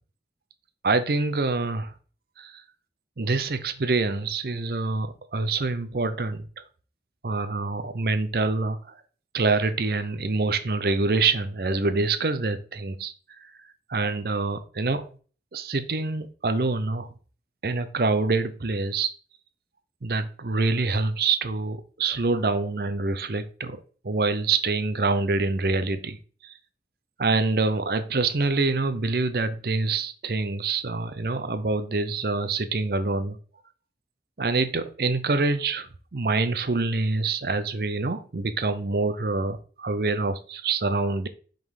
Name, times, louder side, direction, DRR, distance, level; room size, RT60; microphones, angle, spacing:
voice 1, 0.8-1.9 2.4-2.6 3.2-6.5 7.2-8.9 9.3-13.1 13.9-15.0 15.5-17.1 17.6-19.1 20.0-26.2 26.4-26.5 27.2-33.4 34.4-41.3, right 3 dB, 55° right, 11 dB, 0.6 m, -26 dB
5.3 x 3.8 x 4.8 m, 0.40 s
head